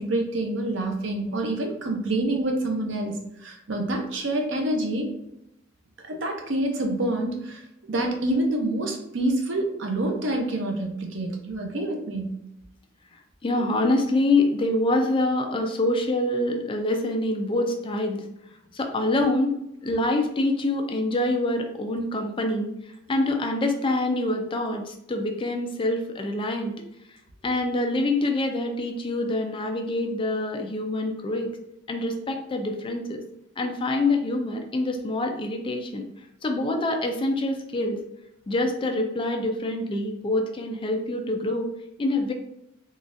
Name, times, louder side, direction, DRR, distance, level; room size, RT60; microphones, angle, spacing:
voice 1, 0.0-5.1 6.1-12.4, right 1 dB, 70° right, 3 dB, 0.7 m, -27 dB
voice 2, 13.4-18.2 18.7-19.6 19.8-22.7 23.1-26.7 27.4-31.5 31.9-33.2 33.6-36.0 36.4-38.0 38.5-41.7 42.0-42.3, left 2 dB, 25° left, 4 dB, 0.4 m, -25 dB
3.7 x 2.4 x 2.5 m, 0.81 s
head